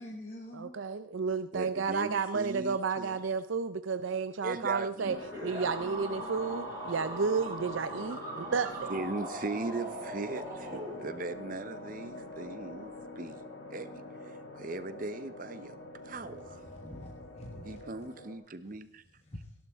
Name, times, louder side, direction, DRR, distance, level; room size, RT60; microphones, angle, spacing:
voice 1, 0.0-0.8 16.0-18.1 18.6-19.5, left 1 dB, 30° left, -1 dB, 1.4 m, -47 dB
voice 2, 0.5-5.2 5.4-8.9, right 5 dB, 80° right, 11 dB, 0.5 m, -32 dB
voice 3, 1.5-3.2 4.4-5.2 8.9-13.4 13.7-13.9 14.2-15.8 16.0-16.6 17.6-19.0, right 2 dB, 45° right, 12 dB, 0.8 m, -38 dB
sound 1, 5.1-18.4, left 2 dB, 65° left, 2.3 m, -45 dB
sound 2, 5.3-11.4, right 2 dB, 20° right, 4.6 m, -41 dB
17.0 x 11.0 x 3.6 m, 0.70 s
head